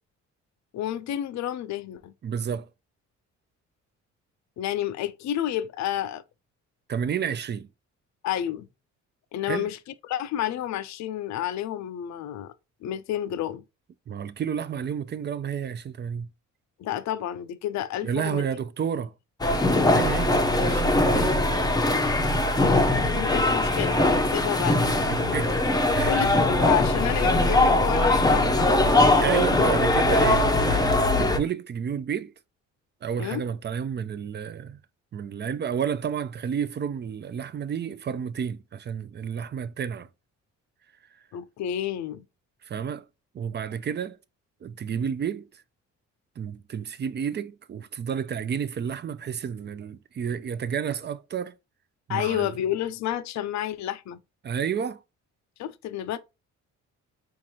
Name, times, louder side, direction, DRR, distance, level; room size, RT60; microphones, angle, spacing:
voice 1, 0.7-2.1 4.6-6.2 8.2-8.7 9.3-12.5 12.8-13.6 16.8-18.4 23.1-25.5 26.0-29.3 33.2-33.4 41.3-42.2 52.1-54.2 55.6-56.2, left 11 dB, 65° left, 0.5 m, -30 dB
voice 2, 2.2-2.7 6.9-7.7 9.5-9.7 14.1-16.3 18.0-19.1 19.9-21.4 25.1-25.6 25.9-26.3 29.2-32.3 33.0-34.8 35.1-40.1 42.6-43.0 43.3-44.2 44.6-45.5 46.4-51.5 52.1-52.5 54.4-55.0, right 7 dB, 35° right, 0.4 m, -31 dB
sound 1, 19.4-31.4, left 2 dB, 15° left, 0.6 m, -21 dB
4.6 x 2.6 x 2.8 m
cardioid pair, 90°, 30 cm